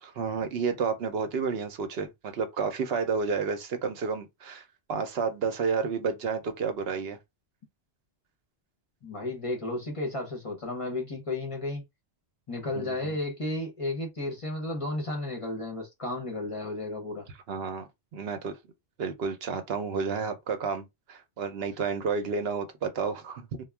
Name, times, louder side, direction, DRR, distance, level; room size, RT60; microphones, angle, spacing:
voice 1, 0.0-4.6 4.9-7.2 12.7-13.2 17.5-18.5 19.0-23.5, right 5 dB, 70° right, 0.8 m, -31 dB
voice 2, 9.0-11.9 12.5-17.3, left 2 dB, 35° left, 0.6 m, -33 dB
2.2 x 2.0 x 3.3 m
omnidirectional pair, 1.1 m